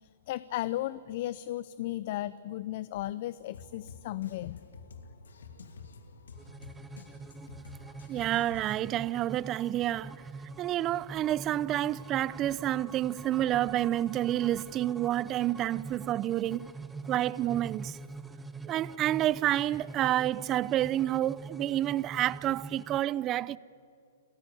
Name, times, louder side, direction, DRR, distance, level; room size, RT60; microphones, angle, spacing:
voice 1, 0.0-4.6, left 14 dB, 50° left, 0.6 m, -35 dB
Drum kit, 3.5-9.0, left 4 dB, 80° left, 2.5 m, -49 dB
sound 1, 6.3-23.0, right 3 dB, 5° right, 1.0 m, -45 dB
voice 2, 8.1-10.1 10.6-16.7 17.0-18.0 18.6-23.6, right 13 dB, 25° right, 0.5 m, -29 dB
28.5 x 14.5 x 9.9 m
hypercardioid pair, 135°, 0 cm